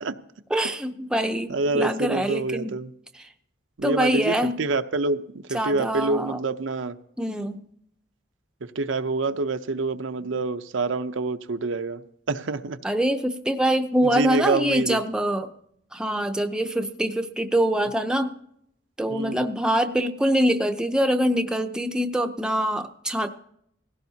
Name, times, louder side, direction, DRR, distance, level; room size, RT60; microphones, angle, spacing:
voice 1, 0.5-2.7 3.1-3.3 3.8-4.6 5.5-6.4 7.2-7.7 12.8-15.5 15.9-18.3 19.0-23.3, equal, 5° right, 0.6 m, -24 dB
voice 2, 1.5-2.9 3.8-5.2 5.5-7.0 8.6-12.0 12.3-12.8 14.0-15.0 19.1-19.5, right 3 dB, 80° right, 0.7 m, -26 dB
18.0 x 16.0 x 2.8 m
head